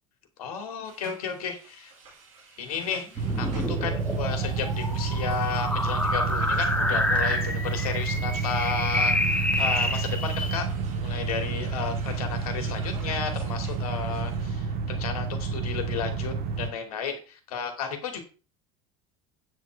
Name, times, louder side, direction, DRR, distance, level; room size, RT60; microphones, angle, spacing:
voice 1, 0.4-1.9 2.6-10.7 11.0-18.2, left 6 dB, 80° left, 6 dB, 2.7 m, -33 dB
sound 1, 0.8-14.6, right 4 dB, 75° right, 5.7 m, -51 dB
sound 2, 3.2-10.6, left 1 dB, 5° left, 2.1 m, -28 dB
sound 3, 3.2-16.7, right 5 dB, 55° right, 2.0 m, -30 dB
9.2 x 7.9 x 4.7 m, 0.35 s
hypercardioid pair, 75°, 18 cm